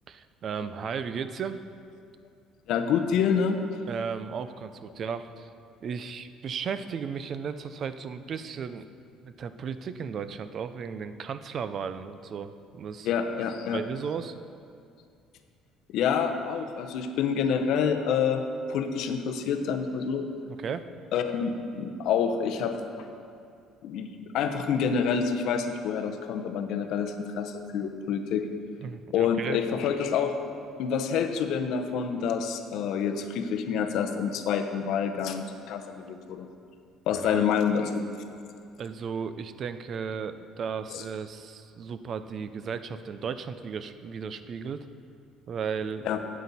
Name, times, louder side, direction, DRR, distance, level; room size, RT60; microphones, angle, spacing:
voice 1, 0.1-1.6 3.9-5.5 5.8-8.9 9.2-13.2 13.7-14.3 20.5-20.9 27.8-27.9 28.8-29.6 37.1-37.5 38.8-44.9 45.5-46.1, right 6 dB, 35° right, 11 dB, 0.4 m, -35 dB
voice 2, 2.7-3.6 13.0-13.8 15.9-18.4 18.7-20.3 21.1-23.1 23.8-28.5 29.1-30.3 30.8-36.5 37.1-38.2 40.9-41.0 46.0-46.2, left 7 dB, 60° left, 6 dB, 0.8 m, -27 dB
12.5 x 8.3 x 4.1 m, 2.4 s
cardioid pair, 160°, 0 cm